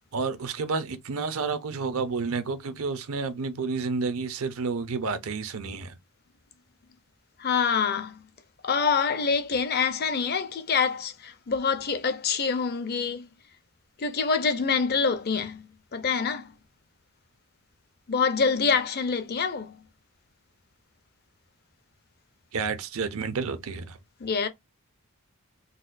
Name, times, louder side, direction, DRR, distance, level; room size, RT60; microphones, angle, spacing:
voice 1, 0.1-6.0 22.5-24.0, right 4 dB, 70° right, 0.6 m, -30 dB
voice 2, 7.4-8.1 8.6-13.3 14.0-15.6 15.9-16.5 18.1-19.7 24.2-24.5, left 5 dB, 45° left, 0.5 m, -26 dB
4.0 x 2.1 x 2.5 m
head